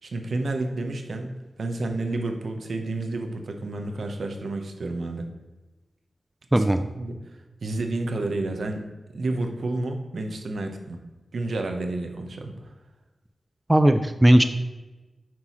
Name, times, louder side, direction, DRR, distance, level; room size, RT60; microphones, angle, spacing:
voice 1, 0.0-5.3 6.6-6.7 6.9-7.2 7.6-8.8 9.1-11.0 11.3-12.7, right 2 dB, 75° right, 4 dB, 0.9 m, -30 dB
voice 2, 13.7-14.4, right 1 dB, 15° right, 8 dB, 0.4 m, -17 dB
9.5 x 6.2 x 3.1 m, 1.1 s
wide cardioid pair, 95°, 0 cm